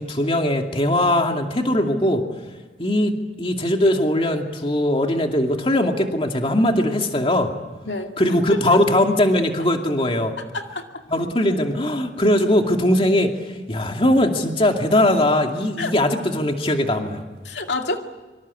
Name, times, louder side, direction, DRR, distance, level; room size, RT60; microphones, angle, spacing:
voice 1, 0.0-2.2 2.8-3.1 3.4-7.5 8.2-10.3 11.1-17.2, left 1 dB, 30° left, 3 dB, 2.4 m, -20 dB
voice 2, 8.4-8.8 10.4-11.0 15.8-15.9 17.4-18.0, left 2 dB, 80° left, 4 dB, 2.3 m, -28 dB
25.5 x 25.0 x 8.4 m, 1.3 s
head